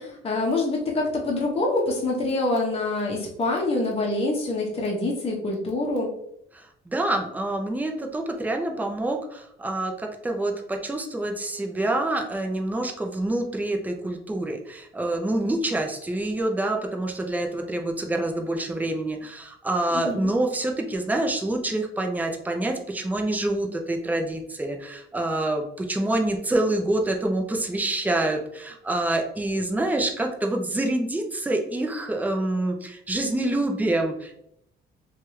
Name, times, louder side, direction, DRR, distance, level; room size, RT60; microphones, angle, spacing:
voice 1, 0.0-6.1 19.9-20.3, left 2 dB, 30° left, -2 dB, 0.8 m, -26 dB
voice 2, 6.5-34.3, right 1 dB, 10° right, 3 dB, 0.5 m, -27 dB
2.9 x 2.4 x 3.0 m, 0.73 s
cardioid pair, 90°, 20 cm